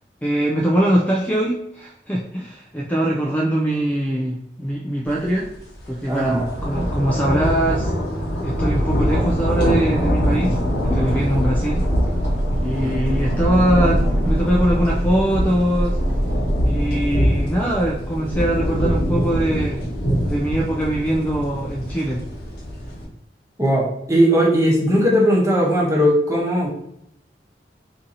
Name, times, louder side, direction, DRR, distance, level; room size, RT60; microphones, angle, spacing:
voice 1, 0.2-5.5 5.9-7.9 8.4-11.8 12.6-16.0 16.6-19.9 20.2-22.3, right 1 dB, 10° left, -3 dB, 0.3 m, -22 dB
sound 1, 5.2-5.4 5.8-23.1, equal, 70° left, 1.1 m, -23 dB
voice 2, 6.1-6.4 23.6-26.7, equal, 20° right, -4 dB, 0.9 m, -18 dB
sound 2, 10.6-18.4 18.7-18.8, equal, 65° right, 0.6 m, -25 dB
2.7 x 2.6 x 3.8 m, 0.74 s
head